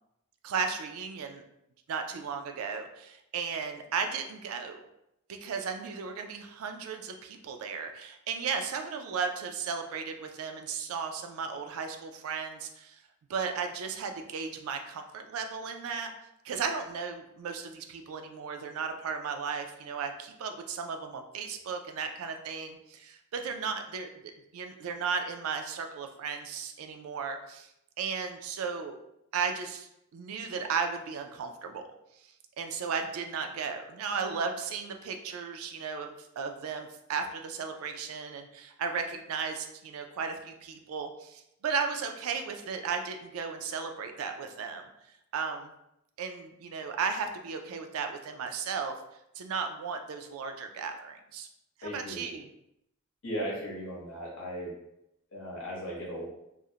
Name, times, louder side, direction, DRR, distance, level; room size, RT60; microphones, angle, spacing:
voice 1, 0.4-1.4 1.9-4.8 5.3-13.0 13.3-16.1 16.4-24.1 24.5-27.7 28.0-29.0 29.3-31.8 32.6-44.9 45.3-45.7 46.2-48.9 49.4-51.5 51.8-52.5, right 5 dB, 80° right, 5 dB, 0.3 m, -35 dB
voice 2, 51.8-52.2 53.2-54.7 55.3-56.2, equal, 70° left, -4 dB, 0.9 m, -37 dB
2.4 x 2.0 x 2.7 m, 0.81 s
head